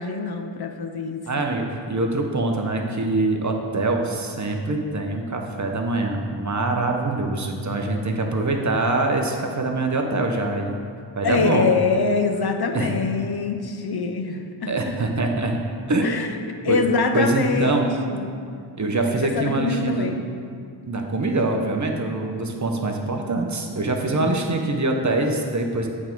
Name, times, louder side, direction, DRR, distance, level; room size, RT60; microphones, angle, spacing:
voice 1, 0.0-1.2 11.2-15.0 16.0-16.3 16.6-18.4 19.2-20.2 24.1-24.4, left 4 dB, 50° left, 5 dB, 0.6 m, -24 dB
voice 2, 1.3-10.8 11.1-11.7 12.7-12.9 14.7-15.6 15.9-16.1 16.7-16.8 17.1-17.9 18.8-20.1 20.9-25.9, right 2 dB, 35° right, 3 dB, 0.7 m, -24 dB
8.3 x 3.6 x 4.5 m, 2.3 s
wide cardioid pair, 65°, 49 cm